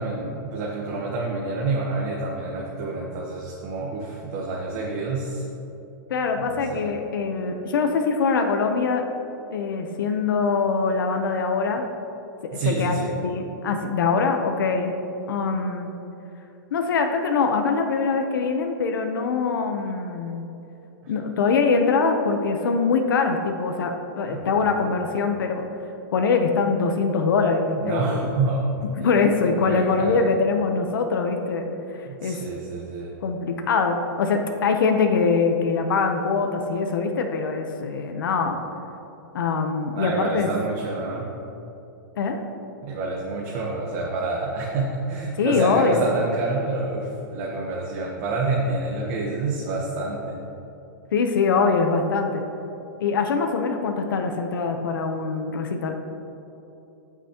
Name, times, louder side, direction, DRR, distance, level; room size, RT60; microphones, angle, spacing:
voice 1, 0.0-5.4 6.4-6.9 12.5-13.1 21.0-21.1 24.3-24.6 27.8-28.7 29.5-30.2 32.0-33.2 39.9-41.3 42.8-50.4, right 3 dB, 40° right, -3 dB, 1.1 m, -28 dB
voice 2, 6.1-9.0 9.5-11.8 12.6-14.9 15.3-15.9 16.7-20.4 21.1-25.7 26.1-28.3 29.0-31.7 31.9-32.4 33.2-38.6 39.3-40.5 42.2-42.4 45.4-46.1 51.1-52.4 53.0-56.0, left 4 dB, 80° left, 4 dB, 0.9 m, -23 dB
16.0 x 6.0 x 3.0 m, 3.0 s
supercardioid pair, 160°, 11 cm